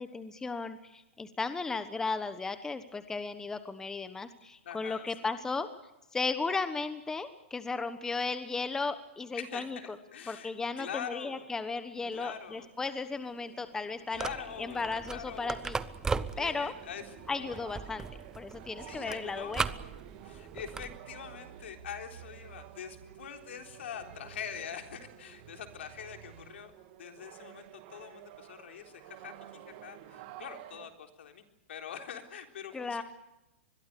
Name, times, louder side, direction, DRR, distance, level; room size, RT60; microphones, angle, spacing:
voice 1, 0.0-5.7 6.1-10.0 10.3-14.3 14.6-15.8 16.4-16.7 17.3-18.1 18.4-19.7 32.7-33.0, left 4 dB, 10° left, 11 dB, 1.1 m, -35 dB
voice 2, 4.7-5.1 9.3-10.5 10.8-11.5 12.1-12.7 14.1-15.6 16.3-17.6 17.8-18.0 18.8-19.6 20.2-31.4 31.7-33.0, left 8 dB, 75° left, 4 dB, 3.8 m, -44 dB
sound 1, 11.9-30.9, right 13 dB, 45° right, 2.3 m, -53 dB
sound 2, 14.1-21.0, right 4 dB, 10° right, 0.8 m, -38 dB
sound 3, 15.9-26.6, right 8 dB, 70° right, 6.2 m, -56 dB
24.5 x 22.0 x 6.9 m, 0.95 s
hypercardioid pair, 145°, 6 cm